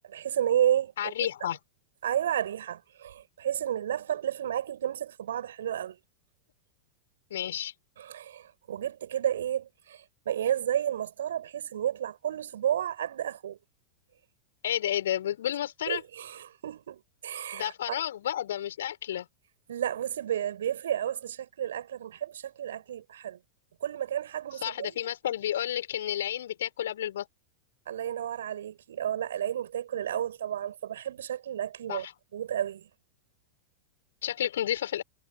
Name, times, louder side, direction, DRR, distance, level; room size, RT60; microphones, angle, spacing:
voice 1, 0.0-1.1 2.0-6.0 8.0-13.6 15.9-17.7 19.7-23.4 23.8-24.9 27.9-32.1 32.3-32.9, right 10 dB, 60° right, 6.5 m, -31 dB
voice 2, 1.0-1.6 7.3-7.7 14.6-16.0 17.5-19.3 24.6-27.3 31.9-32.1 34.2-35.0, left 11 dB, 60° left, 5.9 m, -31 dB
figure-of-eight pair, 90°, 0 cm